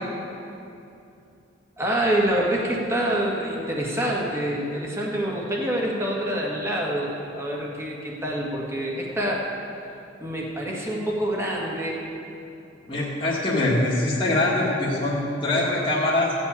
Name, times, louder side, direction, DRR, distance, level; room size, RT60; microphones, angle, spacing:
voice 1, 1.8-9.4 10.2-12.0, right 1 dB, 15° right, -3 dB, 1.8 m, -26 dB
voice 2, 12.9-16.3, left 2 dB, 30° left, -7 dB, 1.8 m, -23 dB
15.5 x 5.4 x 8.4 m, 2.7 s
head